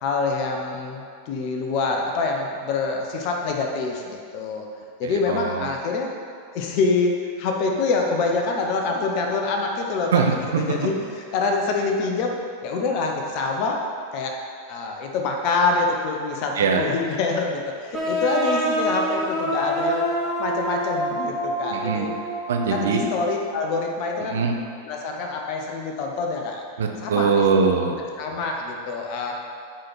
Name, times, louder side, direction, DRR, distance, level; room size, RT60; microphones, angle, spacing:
voice 1, 0.0-4.7 5.0-6.1 6.5-10.2 10.6-12.3 12.6-14.4 14.7-20.1 20.4-22.1 22.7-24.4 24.9-26.7 27.0-27.3 27.9-29.3, left 4 dB, 45° left, 1 dB, 1.1 m, -26 dB
voice 2, 5.0-5.7 10.1-10.6 16.6-16.9 21.7-22.1 22.5-23.0 24.2-24.5 26.8-28.0, right 5 dB, 60° right, 3 dB, 0.8 m, -22 dB
sound 1, 17.9-23.4, right 1 dB, 15° right, 2.0 m, -27 dB
8.1 x 4.3 x 5.9 m, 2.2 s
figure-of-eight pair, 90°, 0 cm